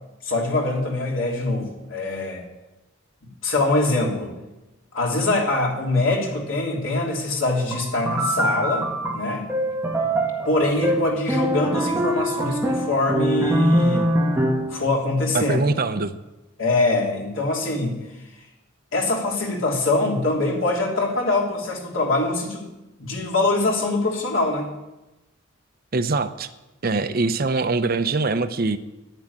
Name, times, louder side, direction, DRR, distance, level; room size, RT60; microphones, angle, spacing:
voice 1, 0.2-2.4 3.2-4.3 4.9-8.9 9.1-9.5 10.4-14.1 14.7-15.6 16.6-18.0 18.9-22.7 23.0-24.7, left 2 dB, 70° left, -1 dB, 3.2 m, -23 dB
sound 1, 7.7-14.8, equal, 10° right, 1.7 m, -23 dB
voice 2, 15.3-16.1 25.9-26.5 26.8-28.8, right 3 dB, 45° right, 10 dB, 0.7 m, -23 dB
11.0 x 8.7 x 9.6 m, 1.0 s
head